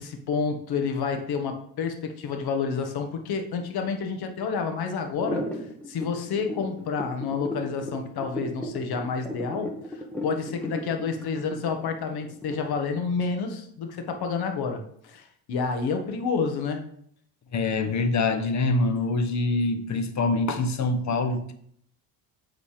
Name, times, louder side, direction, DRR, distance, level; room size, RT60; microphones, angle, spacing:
voice 1, 0.0-5.4 5.9-9.7 10.2-16.8, left 5 dB, 55° left, 1.6 m, -29 dB
sound 1, 5.1-13.0, left 1 dB, 5° left, 1.4 m, -35 dB
voice 2, 17.5-21.5, left 3 dB, 40° left, 1.1 m, -25 dB
8.5 x 4.1 x 5.0 m
cardioid pair, 105°, 45 cm